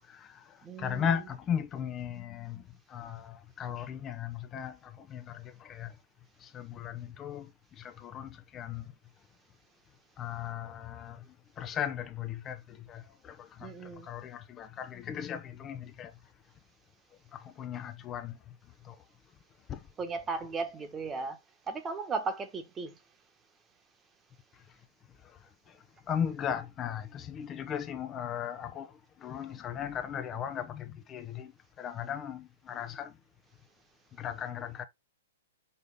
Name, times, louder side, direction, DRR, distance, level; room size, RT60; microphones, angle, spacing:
voice 1, 0.0-6.0 6.4-8.9 10.2-16.2 17.3-18.5 18.8-19.0 19.7-19.9 24.5-24.8 25.2-33.2 34.1-34.8, left 8 dB, 25° left, 0.7 m, -37 dB
voice 2, 0.6-1.1 13.6-14.1 20.0-21.4 21.7-22.9, right 4 dB, 20° right, 1.4 m, -36 dB
5.5 x 5.2 x 3.6 m
hypercardioid pair, 120°, 0 cm